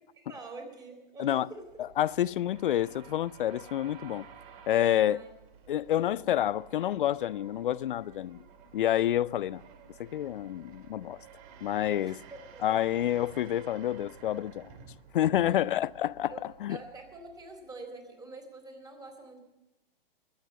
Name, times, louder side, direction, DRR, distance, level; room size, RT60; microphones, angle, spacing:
voice 1, 0.1-1.7 5.0-5.3 6.0-6.1 12.0-12.9 15.6-15.7 16.3-16.4 16.7-19.4, right 3 dB, 15° right, 3.7 m, -46 dB
sound 1, 1.4-17.8, right 6 dB, 40° right, 2.1 m, -53 dB
voice 2, 2.0-4.3 4.7-5.2 5.7-8.4 8.7-9.6 10.0-11.2 11.6-12.2 12.6-14.7 15.1-16.3 16.6-16.8, left 12 dB, 60° left, 0.5 m, -28 dB
22.5 x 9.1 x 6.9 m
hypercardioid pair, 125°, 29 cm